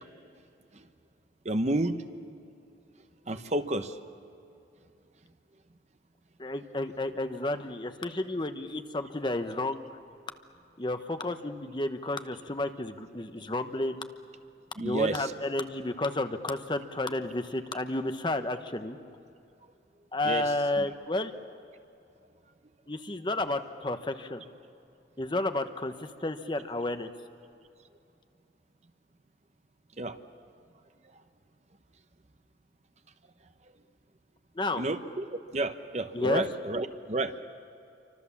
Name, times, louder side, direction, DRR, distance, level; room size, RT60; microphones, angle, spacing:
voice 1, 1.4-1.9 3.3-3.9 14.8-15.3 20.2-20.4 20.8-20.9 30.0-30.2 34.8-37.4, right 2 dB, 40° right, 9 dB, 1.0 m, -30 dB
voice 2, 6.4-9.9 10.8-14.0 14.8-19.0 20.1-21.3 22.9-24.4 25.2-27.1 34.6-34.8 36.1-36.4, left 2 dB, 25° left, 8 dB, 0.9 m, -31 dB
28.0 x 25.0 x 7.2 m, 2.7 s
head